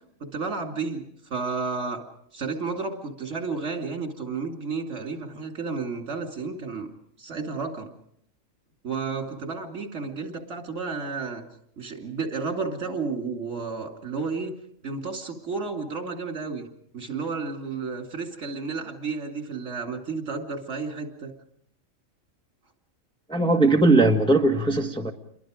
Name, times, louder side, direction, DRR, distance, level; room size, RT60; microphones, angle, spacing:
voice 1, 0.2-1.0 1.3-2.0 2.3-6.9 7.2-7.9 8.8-11.4 11.8-14.5 14.8-16.6 16.9-21.3, right 4 dB, 60° right, 3 dB, 3.2 m, -32 dB
voice 2, 23.3-25.1, right 2 dB, 5° left, 2 dB, 1.7 m, -19 dB
29.0 x 23.0 x 5.1 m, 0.71 s
omnidirectional pair, 1.4 m